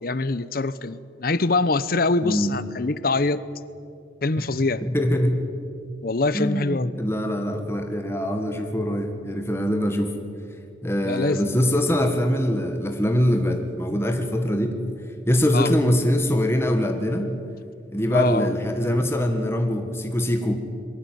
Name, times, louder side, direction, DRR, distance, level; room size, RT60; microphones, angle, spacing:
voice 1, 0.0-3.4 4.2-4.8 6.0-6.9 11.0-11.5 15.5-15.7 18.1-18.5, left 3 dB, 50° left, 16 dB, 0.8 m, -24 dB
voice 2, 2.2-2.5 4.4-4.5 4.8-5.4 6.3-10.2 10.8-14.8 15.3-17.3 17.9-20.6, equal, 15° left, 4 dB, 1.6 m, -23 dB
22.0 x 15.5 x 9.4 m, 2.4 s
head